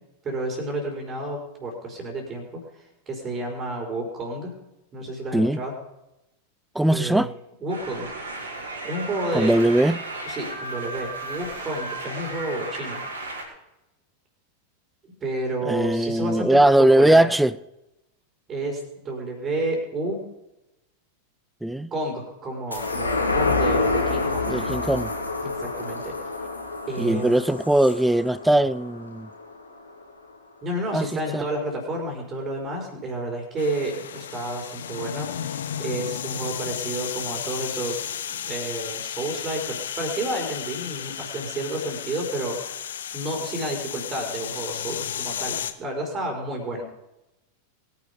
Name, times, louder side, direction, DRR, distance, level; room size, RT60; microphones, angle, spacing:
voice 1, 0.2-4.5 4.9-5.7 6.9-7.3 7.6-8.2 8.8-9.6 10.2-13.0 15.0-17.3 18.5-20.2 21.9-24.5 25.4-26.1 26.9-27.4 30.6-38.0 38.3-46.8, right 1 dB, 25° right, 5.1 m, -30 dB
voice 2, 6.7-7.3 9.3-10.0 15.7-17.5 21.6-21.9 24.5-25.1 27.0-29.3 30.9-31.1 31.3-31.4, right 1 dB, 5° right, 0.6 m, -20 dB
sound 1, 7.7-13.4, right 2 dB, 65° right, 5.8 m, -34 dB
sound 2, 22.7-29.5 29.9-30.0, left 3 dB, 85° left, 2.9 m, -27 dB
sound 3, 33.6-45.7, left 9 dB, 65° left, 1.1 m, -33 dB
22.5 x 11.0 x 5.3 m
figure-of-eight pair, 90°, 0 cm